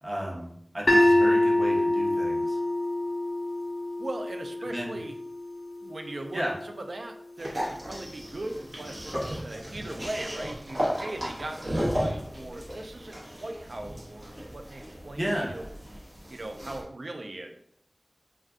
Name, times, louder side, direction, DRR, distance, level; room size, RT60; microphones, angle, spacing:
voice 1, 0.0-2.6 4.6-4.9 6.3-6.5 15.2-15.5, equal, 30° right, -3 dB, 0.8 m, -33 dB
sound 1, 0.9-7.0, left 1 dB, 50° left, 0.3 m, -26 dB
voice 2, 4.0-5.1 5.8-15.6 16.3-17.6, right 2 dB, 85° right, 5 dB, 0.3 m, -39 dB
sound 2, 7.4-16.8, equal, 55° right, 1.0 m, -35 dB
2.4 x 2.2 x 3.5 m, 0.67 s
wide cardioid pair, 55°, 0 cm